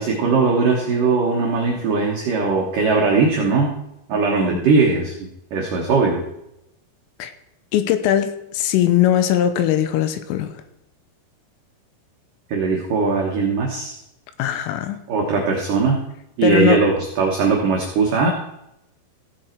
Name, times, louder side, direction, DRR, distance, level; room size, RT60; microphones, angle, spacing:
voice 1, 0.0-3.7 4.1-6.2 12.5-14.0 15.1-16.0 16.4-18.3, right 4 dB, 80° right, 0 dB, 1.9 m, -19 dB
voice 2, 7.7-10.5 14.4-15.0 16.4-16.8, left 11 dB, 90° left, 10 dB, 3.4 m, -20 dB
15.5 x 7.8 x 4.5 m, 0.84 s
omnidirectional pair, 5.9 m